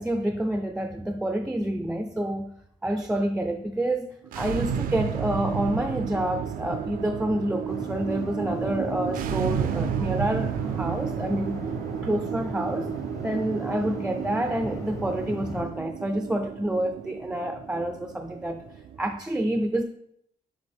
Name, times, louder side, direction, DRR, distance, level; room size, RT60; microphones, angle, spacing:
voice 1, 0.0-2.5 2.8-11.6 12.0-12.9 13.2-18.6 19.0-19.8, right 1 dB, 5° right, 7 dB, 0.3 m, -28 dB
sound 1, 4.2-19.2, right 8 dB, 80° right, 0.4 m, -32 dB
sound 2, 7.7-15.6, left 2 dB, 25° left, 0.7 m, -39 dB
6.5 x 5.0 x 3.5 m, 0.71 s
wide cardioid pair, 160°, 14 cm